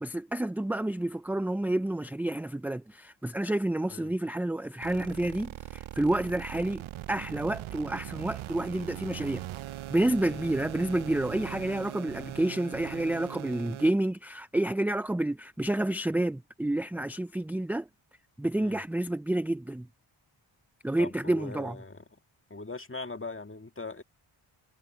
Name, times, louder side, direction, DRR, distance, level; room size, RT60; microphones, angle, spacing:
voice 1, 0.0-6.8 7.1-9.4 9.9-17.9 18.4-19.9 20.8-21.8, right 1 dB, 5° right, 0.4 m, -29 dB
sound 1, 4.8-13.9, right 14 dB, 70° right, 0.6 m, -41 dB
voice 2, 21.0-22.0 22.5-24.0, left 3 dB, 25° left, 1.9 m, -41 dB
cardioid pair, 60°, 50 cm